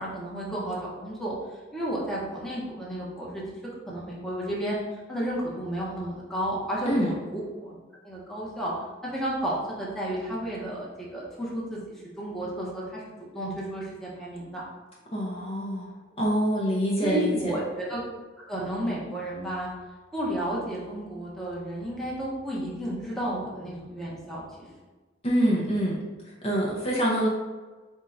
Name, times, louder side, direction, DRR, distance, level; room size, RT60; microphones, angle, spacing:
voice 1, 0.0-1.4 1.7-3.4 3.9-4.8 5.1-7.8 8.0-8.7 9.0-11.8 12.2-13.0 13.3-14.6 17.0-18.0 18.4-19.7 20.1-24.7, right 1 dB, ahead, -6 dB, 0.9 m, -32 dB
voice 2, 15.1-17.6 25.2-26.0 26.2-27.3, equal, 30° left, -5 dB, 0.7 m, -26 dB
4.3 x 2.8 x 3.7 m, 1.3 s
head